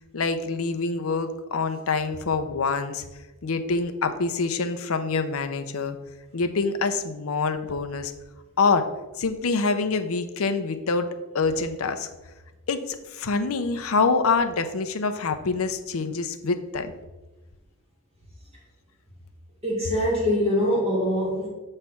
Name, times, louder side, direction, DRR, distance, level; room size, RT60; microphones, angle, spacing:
voice 1, 0.1-3.0 3.4-6.0 6.3-8.1 8.6-8.9 9.2-11.1 11.3-12.1 12.7-16.9, left 4 dB, 85° left, 8 dB, 0.6 m, -25 dB
voice 2, 19.6-21.5, equal, 30° right, -4 dB, 1.9 m, -23 dB
7.2 x 3.3 x 5.7 m, 1.1 s
head